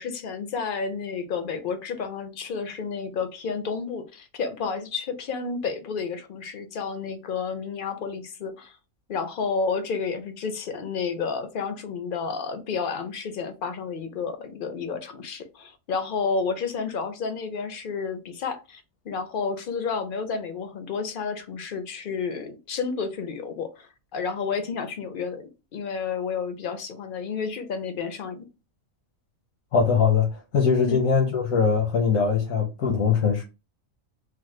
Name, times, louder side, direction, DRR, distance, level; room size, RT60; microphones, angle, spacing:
voice 1, 0.0-8.7 9.1-28.5 30.9-31.0, left 5 dB, 60° left, 0.5 m, -31 dB
voice 2, 29.7-33.4, left 6 dB, 90° left, 1.2 m, -21 dB
3.2 x 2.1 x 3.1 m
omnidirectional pair, 1.4 m